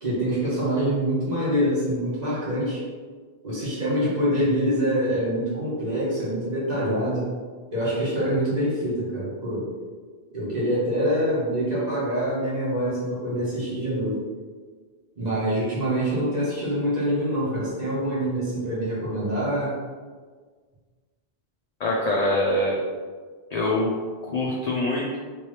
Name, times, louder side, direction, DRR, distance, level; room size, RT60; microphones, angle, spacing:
voice 1, 0.0-2.8 3.4-7.3 7.7-9.7 10.3-14.2 15.1-19.8, equal, 40° right, -8 dB, 1.4 m, -25 dB
voice 2, 21.8-22.8 23.5-23.9 24.3-25.2, left 1 dB, 50° left, -3 dB, 0.5 m, -24 dB
3.4 x 2.9 x 3.2 m, 1.5 s
omnidirectional pair, 1.1 m